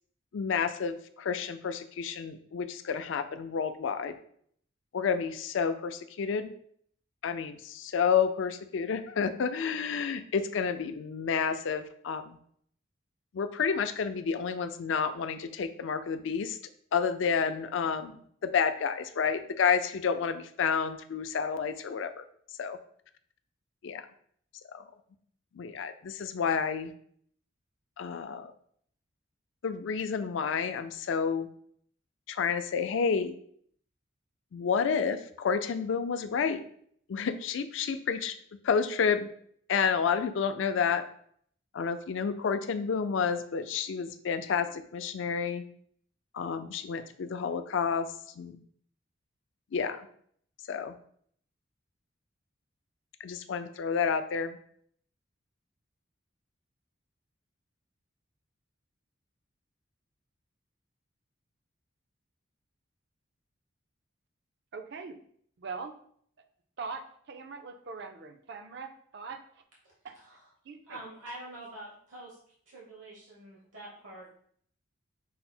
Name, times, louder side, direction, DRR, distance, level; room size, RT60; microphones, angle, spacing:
voice 1, 0.3-4.2 4.9-6.5 7.2-12.4 13.3-16.6 16.9-22.2 22.6-22.8 23.8-24.1 24.7-24.8 25.5-26.9 28.0-28.5 29.6-31.5 32.3-33.4 34.5-36.6 37.1-38.3 38.6-39.3 39.7-41.0 41.7-45.6 46.3-48.1 48.4-48.6 49.7-50.1 50.7-50.9 53.2-54.6, left 6 dB, 70° left, 9 dB, 0.4 m, -30 dB
voice 2, 64.7-65.2 65.6-65.9 66.8-69.4 70.0-70.1 70.7-71.0, right 4 dB, 55° right, 7 dB, 0.5 m, -41 dB
voice 3, 70.1-70.5 70.9-72.4 72.7-74.3, right 1 dB, 75° right, -4 dB, 1.2 m, -46 dB
5.6 x 2.0 x 4.2 m, 0.62 s
head